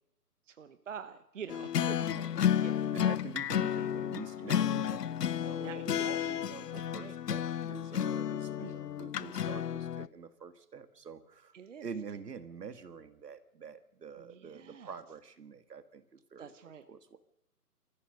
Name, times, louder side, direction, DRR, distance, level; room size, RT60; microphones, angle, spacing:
voice 1, 0.5-2.3 2.6-3.0 5.6-6.2 6.7-7.1 8.6-8.7 11.5-11.9 14.2-14.9 16.4-16.9, right 7 dB, 50° right, 11 dB, 1.1 m, -46 dB
sound 1, 1.5-10.1, left 9 dB, 85° left, 0.8 m, -32 dB
voice 2, 1.8-2.2 2.9-11.5 11.8-16.5 16.9-17.2, right 6 dB, 85° right, 11 dB, 2.1 m, -46 dB
28.5 x 14.5 x 6.7 m, 0.85 s
hypercardioid pair, 165°, 47 cm